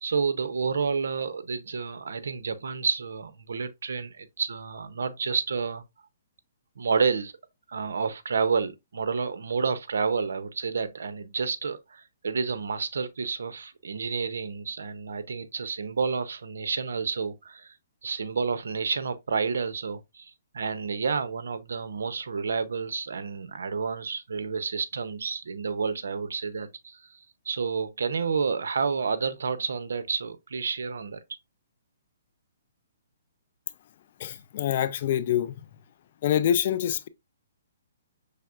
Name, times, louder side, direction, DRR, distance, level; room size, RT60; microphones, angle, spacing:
voice 1, 0.0-5.8 6.8-7.3 7.7-17.7 18.0-27.2 27.5-31.2, right 5 dB, 85° right, 0.6 m, -30 dB
voice 2, 34.2-35.6 36.2-37.1, left 10 dB, 40° left, 0.4 m, -25 dB
5.7 x 3.3 x 2.4 m
hypercardioid pair, 165°, 0 cm